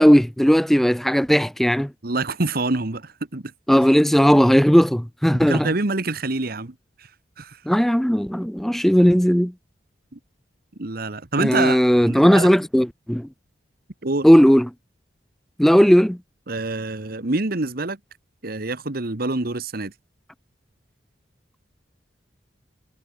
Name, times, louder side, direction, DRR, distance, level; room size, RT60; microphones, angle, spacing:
voice 1, 0.0-1.9 3.7-5.7 7.7-9.5 11.4-13.3 14.2-14.7 15.6-16.2, equal, ahead, 0.4 m, -16 dB
voice 2, 2.0-3.5 5.4-7.1 7.4-7.6 10.1-10.2 10.8-11.8 12.1-12.5 14.0-14.3 16.5-18.0 18.4-19.9, right 2 dB, 55° right, 1.5 m, -26 dB
head